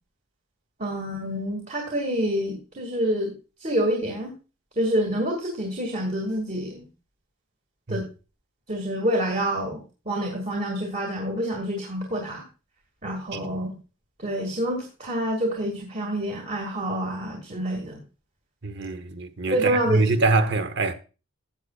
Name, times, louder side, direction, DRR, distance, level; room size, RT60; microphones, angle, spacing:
voice 1, 0.8-3.3 3.6-4.3 4.8-6.9 7.9-8.0 8.7-12.4 13.0-13.8 14.2-18.0 19.5-20.0, right 1 dB, 35° right, 2.2 m, -27 dB
voice 2, 18.6-20.9, right 3 dB, 50° right, 1.0 m, -24 dB
14.5 x 8.3 x 2.4 m
head